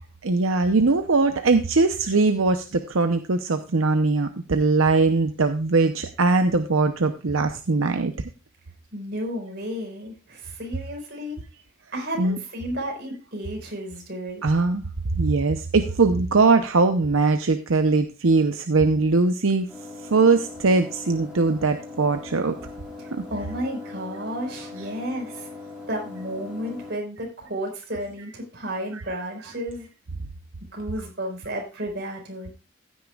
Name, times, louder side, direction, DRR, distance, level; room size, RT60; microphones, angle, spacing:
voice 1, 0.2-8.1 12.2-12.4 14.4-14.8 15.1-19.7 20.1-22.5 23.1-23.2 28.9-29.0, right 3 dB, 85° right, 7 dB, 0.7 m, -21 dB
voice 2, 8.9-11.4 11.9-14.4 23.3-25.5 25.9-29.9 30.7-32.5, equal, 55° right, 1 dB, 4.6 m, -32 dB
sound 1, 19.7-26.9, left 3 dB, 5° right, 3.4 m, -40 dB
15.0 x 9.4 x 2.4 m, 0.32 s
head